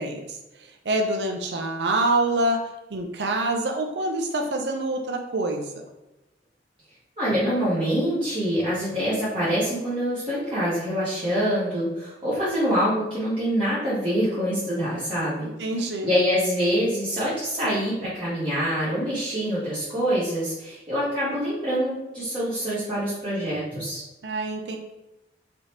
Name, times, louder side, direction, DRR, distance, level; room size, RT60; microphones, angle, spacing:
voice 1, 0.0-2.6 2.9-5.7 15.6-16.1 24.2-24.8, right 2 dB, 75° right, 3 dB, 0.6 m, -26 dB
voice 2, 7.2-15.5 16.0-24.0, equal, 30° right, -11 dB, 1.4 m, -25 dB
5.1 x 2.9 x 3.3 m, 0.99 s
head